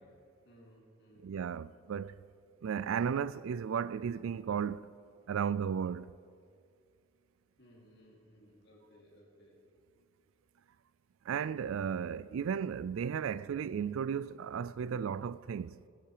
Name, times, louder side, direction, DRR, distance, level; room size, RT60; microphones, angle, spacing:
voice 1, 0.4-1.3 7.6-9.6, equal, 50° left, 3.0 m, -60 dB
voice 2, 1.2-2.1 2.6-4.9 5.3-6.1 11.3-15.8, right 7 dB, 75° right, 0.3 m, -34 dB
16.0 x 10.5 x 5.0 m
head